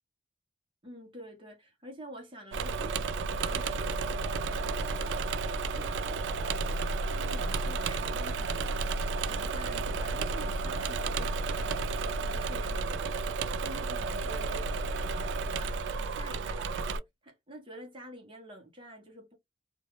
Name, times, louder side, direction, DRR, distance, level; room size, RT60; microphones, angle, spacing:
voice 1, 0.8-19.3, right 1 dB, 25° right, 0.8 m, -48 dB
Engine / Mechanisms, 2.5-17.0, right 3 dB, 70° right, 0.3 m, -32 dB
2.3 x 2.2 x 2.9 m
head